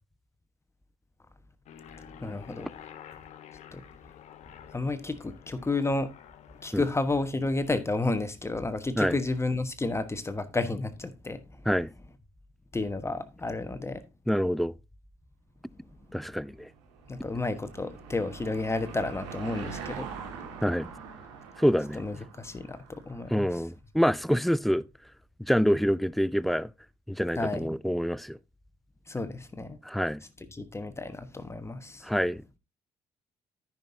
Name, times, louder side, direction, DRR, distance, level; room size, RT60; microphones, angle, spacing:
Aircraft, 1.7-6.8, left 9 dB, 55° left, 1.0 m, -49 dB
voice 1, 2.2-2.7 3.7-3.8 4.7-6.1 6.6-11.4 12.7-14.0 17.1-20.1 21.9-23.6 27.4-27.7 29.1-29.8 30.5-32.1, left 2 dB, 20° left, 1.2 m, -31 dB
voice 2, 14.3-14.7 16.1-16.7 20.6-20.9 21.6-22.0 23.3-24.8 25.5-26.7 27.1-28.4 29.9-30.2 32.0-32.4, equal, ahead, 0.4 m, -26 dB
Car passing by / Engine, 16.5-23.3, right 6 dB, 75° right, 1.9 m, -43 dB
14.0 x 5.9 x 2.7 m
figure-of-eight pair, 45°, 14 cm